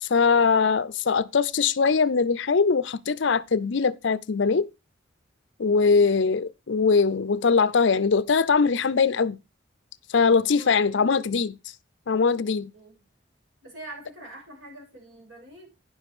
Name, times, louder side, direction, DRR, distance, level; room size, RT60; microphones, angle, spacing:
voice 1, 0.0-4.7 5.6-9.4 10.1-11.6 12.1-12.7, left 5 dB, 70° left, 0.6 m, -21 dB
voice 2, 10.6-11.4 12.7-13.0 13.6-15.7, right 1 dB, 85° right, 6.5 m, -45 dB
9.7 x 7.1 x 4.8 m
head